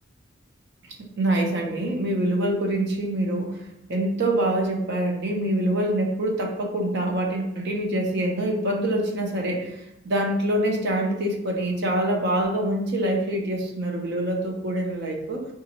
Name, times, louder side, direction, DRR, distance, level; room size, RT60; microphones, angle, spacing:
voice 1, 1.0-3.5 3.9-9.7 10.0-15.5, right 1 dB, 55° right, 1 dB, 0.5 m, -25 dB
3.8 x 2.3 x 2.9 m, 0.86 s
head